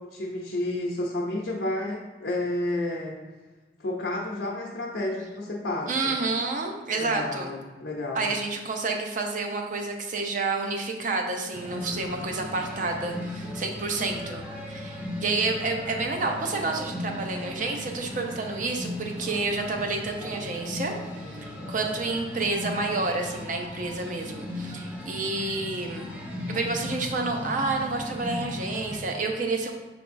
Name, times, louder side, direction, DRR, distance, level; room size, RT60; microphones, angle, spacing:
voice 1, 0.0-3.2 3.8-6.2 7.0-8.3, left 1 dB, 90° left, -3 dB, 0.7 m, -31 dB
voice 2, 5.9-7.5 8.1-20.9 21.3-26.1 26.5-29.7, right 3 dB, 50° right, 2 dB, 0.6 m, -29 dB
sound 1, 11.5-29.0, left 1 dB, 10° right, 0.7 m, -37 dB
5.9 x 3.4 x 2.6 m, 1.3 s
head